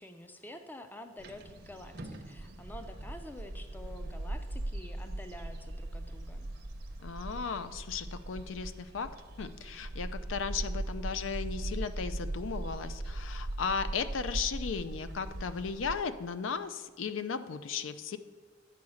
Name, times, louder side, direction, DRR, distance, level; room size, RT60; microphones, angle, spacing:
voice 1, 0.0-6.5, left 1 dB, 10° left, 7 dB, 0.4 m, -48 dB
sound 1, 1.2-16.0, right 1 dB, 55° right, 0.6 m, -39 dB
voice 2, 7.0-9.1 9.4-18.2, left 5 dB, 80° left, 12 dB, 0.5 m, -36 dB
8.5 x 4.7 x 6.3 m, 1.5 s
head